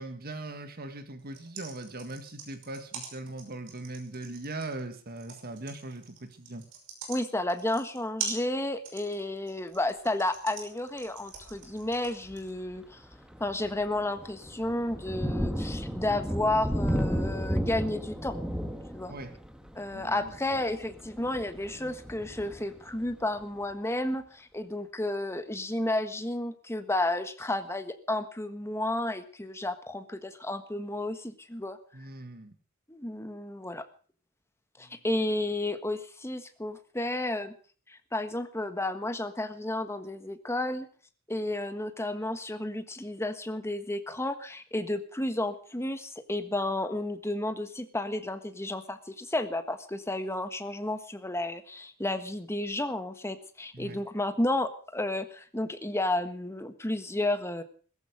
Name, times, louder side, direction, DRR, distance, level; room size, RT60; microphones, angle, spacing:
voice 1, 0.0-6.6 19.1-19.3 19.9-20.3 31.9-32.6 34.8-35.0 53.7-54.0, right 2 dB, 45° right, 8 dB, 2.0 m, -40 dB
sound 1, 1.2-12.5, right 6 dB, 60° right, 5.6 m, -42 dB
voice 2, 7.1-13.0 13.4-18.4 18.9-19.1 19.7-31.8 32.9-33.8 34.8-37.5 37.9-40.9 41.3-57.6, left 1 dB, 10° left, 9 dB, 1.4 m, -32 dB
Thunder, 11.4-11.7 12.2-12.4 12.8-23.4, equal, 5° right, 1.5 m, -34 dB
16.5 x 14.5 x 5.0 m, 0.42 s
head